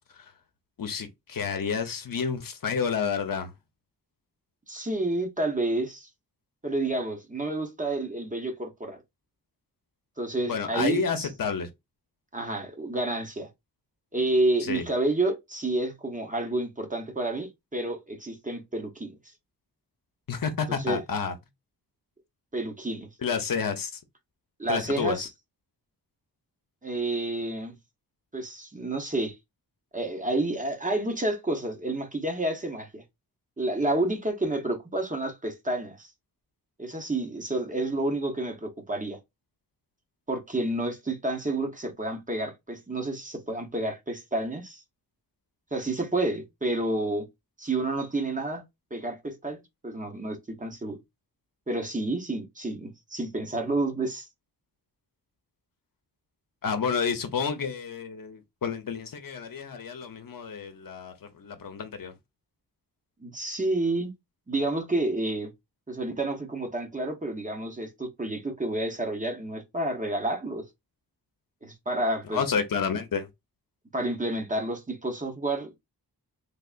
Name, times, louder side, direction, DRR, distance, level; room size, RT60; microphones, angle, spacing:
voice 1, 0.8-3.5 10.5-11.7 14.6-14.9 20.3-21.3 23.2-24.0 24.7-25.3 56.6-62.1 72.3-73.3, left 6 dB, 60° left, 0.9 m, -30 dB
voice 2, 4.7-6.1 6.6-9.0 10.2-11.3 12.3-13.5 14.1-19.2 20.7-21.0 22.5-23.1 24.6-25.3 26.8-27.8 28.3-29.4 29.9-33.0 33.6-36.1 36.8-39.2 40.3-44.8 45.7-47.3 47.6-48.6 48.9-49.6 49.8-51.0 51.7-54.3 63.2-64.1 64.5-65.5 65.9-70.6 71.6-72.4 73.9-75.8, right 2 dB, 20° right, 0.9 m, -29 dB
3.5 x 3.4 x 2.4 m
wide cardioid pair, 125°, 38 cm